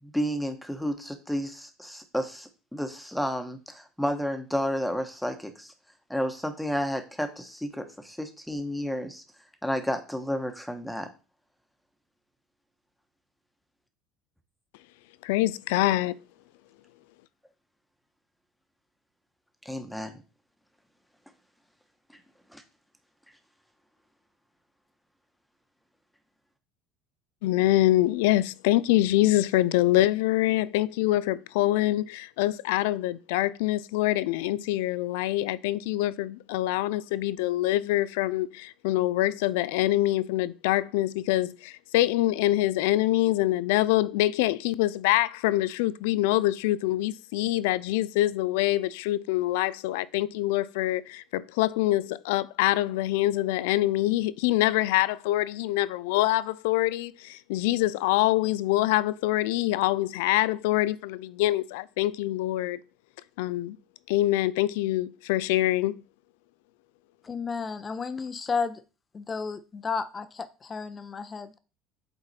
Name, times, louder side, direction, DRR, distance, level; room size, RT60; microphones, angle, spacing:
voice 1, 0.0-5.7 6.1-9.2 9.6-11.1 19.6-20.2 22.5-22.6, equal, ahead, 1.1 m, -31 dB
voice 2, 15.2-16.2 27.4-62.8 63.4-63.8 64.1-66.0, left 16 dB, 90° left, 0.3 m, -25 dB
voice 3, 67.2-68.8 69.1-71.6, left 5 dB, 25° left, 0.7 m, -32 dB
7.9 x 4.0 x 4.1 m
cardioid pair, 125°, 0 cm